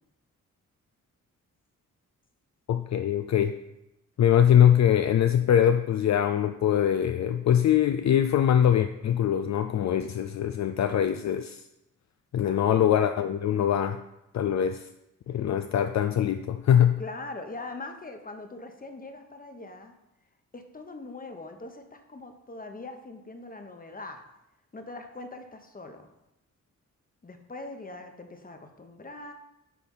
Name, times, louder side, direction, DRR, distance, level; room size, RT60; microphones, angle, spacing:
voice 1, 2.7-3.6 4.2-11.6 12.3-14.0 14.3-14.9 15.3-17.0, left 9 dB, 60° left, 8 dB, 0.4 m, -23 dB
voice 2, 12.4-12.8 15.4-15.5 17.0-19.9 20.5-24.2 24.7-26.1 27.2-29.3, left 2 dB, 25° left, 6 dB, 1.1 m, -42 dB
9.4 x 3.4 x 5.6 m, 0.90 s
cardioid pair, 70°, 32 cm